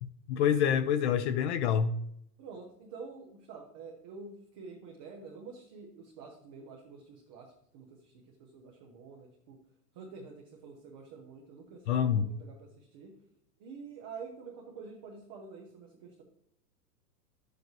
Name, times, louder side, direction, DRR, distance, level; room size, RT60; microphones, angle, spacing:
voice 1, 0.0-2.0 11.9-12.3, left 8 dB, 45° left, 0.5 m, -27 dB
voice 2, 2.4-9.6 9.9-13.1 13.6-16.2, right 4 dB, 15° right, 0.3 m, -48 dB
10.0 x 7.9 x 3.0 m
hypercardioid pair, 130°, 48 cm